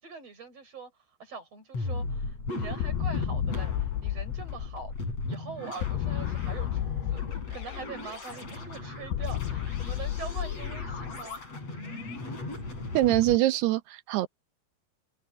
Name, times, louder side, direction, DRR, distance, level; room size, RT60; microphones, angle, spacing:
voice 1, 0.0-0.9 1.2-4.9 5.3-11.4, right 5 dB, 35° right, 7.0 m, -43 dB
sound 1, 1.7-13.4, left 2 dB, 35° left, 9.1 m, -37 dB
sound 2, 2.8-5.1 5.8-8.1 9.1-11.4, left 13 dB, 80° left, 2.7 m, -32 dB
voice 2, 12.9-14.3, right 16 dB, 75° right, 2.7 m, -24 dB
omnidirectional pair, 5.0 m